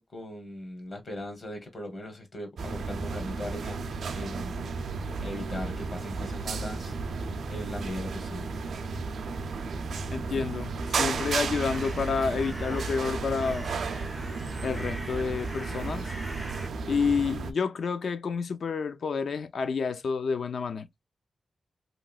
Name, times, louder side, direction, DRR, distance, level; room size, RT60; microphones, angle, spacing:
voice 1, 0.0-4.7 5.2-8.6, left 1 dB, 40° left, 0.9 m, -39 dB
sound 1, 2.6-17.5, right 4 dB, 90° right, 0.4 m, -33 dB
voice 2, 10.1-13.7 14.6-16.1 16.8-20.9, left 5 dB, 65° left, 0.4 m, -29 dB
sound 2, 11.1-16.7, right 1 dB, 5° right, 0.4 m, -44 dB
3.0 x 2.8 x 2.3 m
wide cardioid pair, 180°, 0 cm